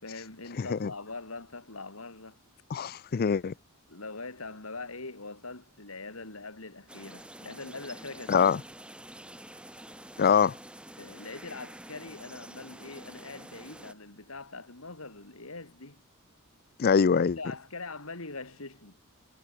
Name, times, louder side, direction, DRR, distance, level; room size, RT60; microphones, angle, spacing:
voice 1, 0.0-2.4 3.9-8.5 11.0-16.0 17.4-19.0, left 3 dB, 70° left, 3.6 m, -42 dB
voice 2, 0.6-0.9 2.7-3.5 8.3-8.6 10.2-10.5 16.8-17.4, left 6 dB, 45° left, 0.4 m, -24 dB
sound 1, 6.9-13.9, right 1 dB, 5° right, 2.1 m, -47 dB
head